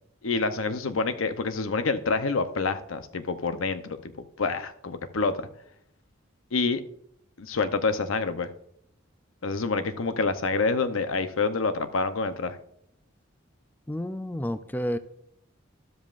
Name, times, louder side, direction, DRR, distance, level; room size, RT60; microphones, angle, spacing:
voice 1, 0.2-5.4 6.5-6.8 7.4-8.5 9.4-12.6, left 4 dB, 85° left, 0.8 m, -27 dB
voice 2, 13.9-15.0, equal, 10° left, 0.3 m, -30 dB
12.5 x 12.5 x 2.5 m
head